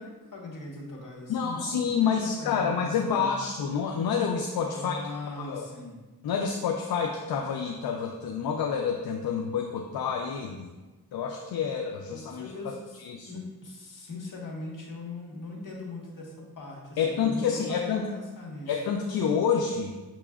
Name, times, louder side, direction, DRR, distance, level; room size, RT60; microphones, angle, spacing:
voice 1, 0.0-3.3 4.7-6.0 12.1-18.8, left 2 dB, 55° left, -2 dB, 1.4 m, -40 dB
voice 2, 1.3-5.0 5.4-5.7 6.2-10.7 11.1-12.5 13.0-13.3 17.0-18.1 18.7-19.9, left 6 dB, 75° left, 2 dB, 0.5 m, -28 dB
6.7 x 3.0 x 2.4 m, 1.2 s
cardioid pair, 70°, 37 cm